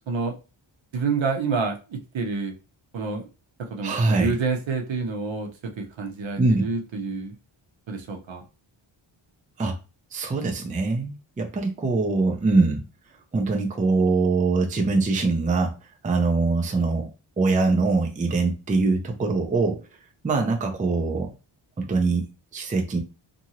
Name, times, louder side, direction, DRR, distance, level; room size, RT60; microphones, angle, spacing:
voice 1, 0.9-2.5 2.9-3.3 3.7-5.5 5.8-7.3 7.9-8.4, right 4 dB, 65° right, 4 dB, 0.8 m, -28 dB
voice 2, 3.8-4.3 6.4-6.7 9.6-9.8 10.1-12.8 13.3-15.7 16.0-17.1 17.4-19.8 20.2-21.3 21.8-22.2 22.5-23.0, right 3 dB, 15° right, 2 dB, 0.4 m, -23 dB
2.8 x 2.6 x 2.8 m, 0.31 s
wide cardioid pair, 155°, 49 cm